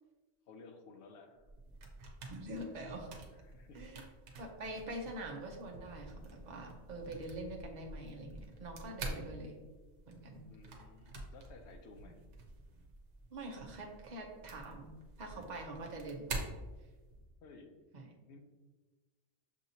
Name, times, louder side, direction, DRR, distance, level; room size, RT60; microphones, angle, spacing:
voice 1, 0.5-1.5 3.3-3.8 4.2-4.5 10.5-12.2 17.4-17.7 18.3-18.4, left 3 dB, 75° left, 5 dB, 0.9 m, -56 dB
sound 1, 1.4-17.3, right 2 dB, 80° right, 1.0 m, -48 dB
voice 2, 2.2-3.1 3.7-4.0 4.4-9.6 10.1-10.4 13.3-14.9 15.2-16.5 17.9-18.1, right 1 dB, 45° right, 1 dB, 0.7 m, -45 dB
6.3 x 2.8 x 2.7 m, 1.3 s
omnidirectional pair, 1.2 m